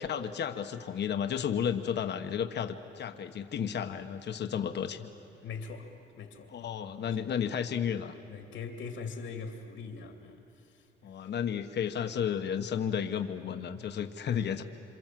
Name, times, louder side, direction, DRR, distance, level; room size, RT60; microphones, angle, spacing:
voice 1, 0.0-5.1 6.5-8.2 11.0-14.6, left 8 dB, 60° left, 7 dB, 1.3 m, -32 dB
voice 2, 5.4-5.9 6.2-6.5 7.0-7.5 8.3-10.4, left 5 dB, 80° left, 4 dB, 2.6 m, -41 dB
27.5 x 26.5 x 7.7 m, 2.7 s
cardioid pair, 90°, 20 cm